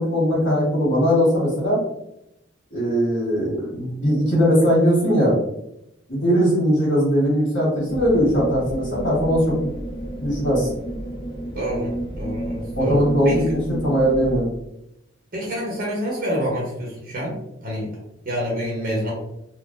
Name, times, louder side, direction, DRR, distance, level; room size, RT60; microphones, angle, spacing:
voice 1, 0.0-1.8 2.7-5.3 6.1-9.6 10.2-10.7 12.7-14.5, equal, 60° left, -5 dB, 1.5 m, -20 dB
sound 1, 7.9-14.4, right 1 dB, 20° left, 0.4 m, -31 dB
voice 2, 11.5-13.4 15.3-17.4 17.6-17.9 18.3-19.1, equal, 50° right, -4 dB, 0.8 m, -27 dB
3.6 x 2.1 x 2.5 m, 0.81 s
head